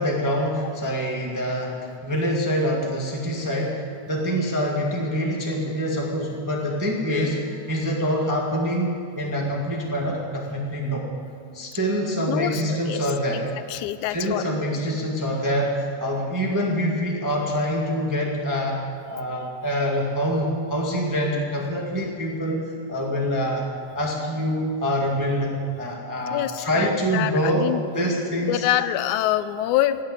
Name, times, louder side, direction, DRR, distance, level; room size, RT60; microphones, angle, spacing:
voice 1, 0.0-11.1 11.5-13.4 14.1-18.8 19.1-23.7 23.9-28.7, equal, 10° right, -2 dB, 0.9 m, -25 dB
voice 2, 12.3-13.1 13.5-14.5 26.3-27.8 28.4-30.0, left 13 dB, 85° left, 13 dB, 2.0 m, -25 dB
17.5 x 7.4 x 8.2 m, 2.4 s
omnidirectional pair, 3.4 m